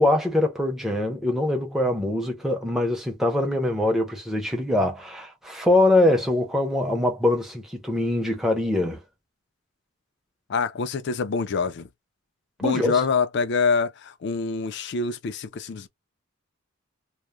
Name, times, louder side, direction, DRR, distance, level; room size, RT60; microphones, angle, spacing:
voice 1, 0.0-9.0 12.6-13.0, left 1 dB, ahead, 0.6 m, -23 dB
voice 2, 10.5-11.9 12.6-15.9, left 5 dB, 50° left, 0.4 m, -25 dB
2.3 x 2.1 x 3.0 m
head